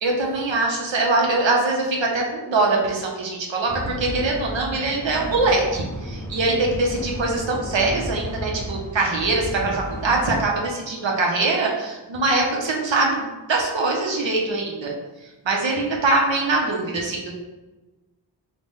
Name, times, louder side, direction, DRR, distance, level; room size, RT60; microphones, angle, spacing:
voice 1, 0.0-14.9 15.4-17.3, right 3 dB, 85° right, -1 dB, 0.7 m, -23 dB
sound 1, 3.7-10.4, equal, 5° left, 0.4 m, -33 dB
3.9 x 2.1 x 3.4 m, 1.2 s
wide cardioid pair, 80°, 44 cm